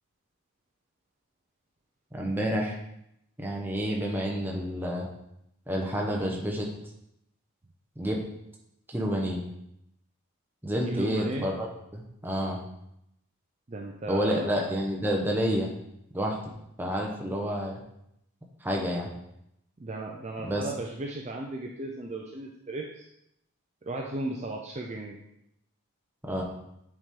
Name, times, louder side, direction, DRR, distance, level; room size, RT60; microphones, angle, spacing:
voice 1, 2.1-2.8 3.4-5.1 5.7-6.7 8.0-8.2 8.9-9.4 10.6-11.7 11.9-12.6 14.1-15.7 16.1-16.4 16.8-17.8 18.6-19.1 20.4-20.7 26.2-26.4, equal, 10° right, -1 dB, 0.9 m, -29 dB
voice 2, 10.8-11.5 13.7-14.5 19.8-23.1 23.8-25.2, right 2 dB, 30° right, 0 dB, 0.5 m, -35 dB
7.8 x 4.3 x 3.7 m, 0.80 s
head